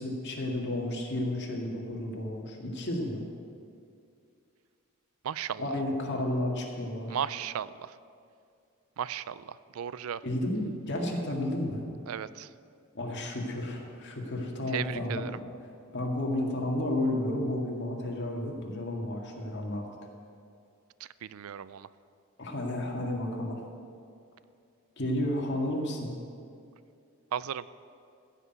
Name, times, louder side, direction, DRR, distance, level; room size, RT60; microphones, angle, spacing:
voice 1, 0.0-3.2 5.6-7.2 10.2-11.8 12.9-15.4 15.9-19.8 22.4-23.6 25.0-26.1, left 1 dB, 55° left, 0 dB, 2.0 m, -32 dB
voice 2, 5.2-5.7 7.1-7.9 9.0-10.2 12.1-12.5 14.7-15.4 21.2-21.9 27.3-27.6, right 9 dB, 75° right, 17 dB, 0.4 m, -35 dB
15.0 x 6.0 x 9.2 m, 2.4 s
head